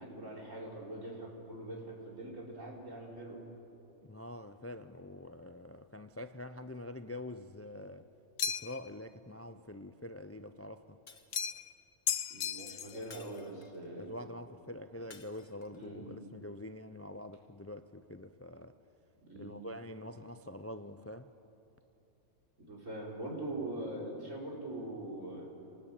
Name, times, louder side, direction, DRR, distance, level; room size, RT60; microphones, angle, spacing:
voice 1, 0.0-3.4 12.3-14.2 15.8-16.2 19.2-19.7 22.6-25.5, right 1 dB, 75° right, 5.0 m, -43 dB
voice 2, 4.1-8.1 8.5-11.0 14.0-18.8 19.4-21.3, left 1 dB, 20° left, 0.4 m, -45 dB
sound 1, 8.4-8.9 11.3-11.7 12.1-13.0, left 9 dB, 70° left, 1.1 m, -35 dB
Shatter, 11.1-11.8 13.1-13.9 15.1-15.9, left 4 dB, 50° left, 1.6 m, -56 dB
27.0 x 20.0 x 9.0 m
omnidirectional pair, 1.3 m